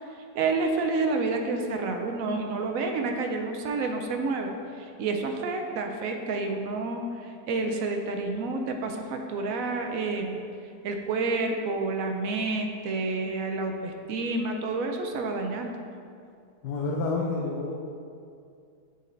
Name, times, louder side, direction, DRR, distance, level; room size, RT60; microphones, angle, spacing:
voice 1, 0.3-10.4 10.8-15.7, right 3 dB, 65° right, 4 dB, 0.9 m, -29 dB
voice 2, 16.6-17.7, left 3 dB, 75° left, -2 dB, 1.2 m, -29 dB
8.1 x 4.2 x 3.9 m, 2.4 s
omnidirectional pair, 1.8 m